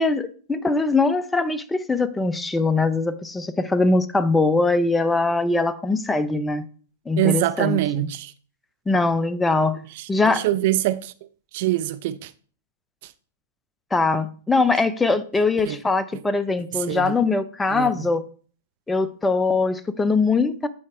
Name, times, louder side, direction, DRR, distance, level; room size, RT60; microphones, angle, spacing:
voice 1, 0.0-6.7 7.1-8.1 8.9-9.8 10.1-10.5 13.9-18.2 18.9-20.7, left 3 dB, 10° left, 0.6 m, -22 dB
voice 2, 7.2-8.3 10.3-11.1 11.5-12.3 15.7-15.8 16.9-17.1 17.7-17.9, right 15 dB, 55° right, 0.6 m, -23 dB
8.7 x 4.7 x 4.4 m
hypercardioid pair, 125°, 0 cm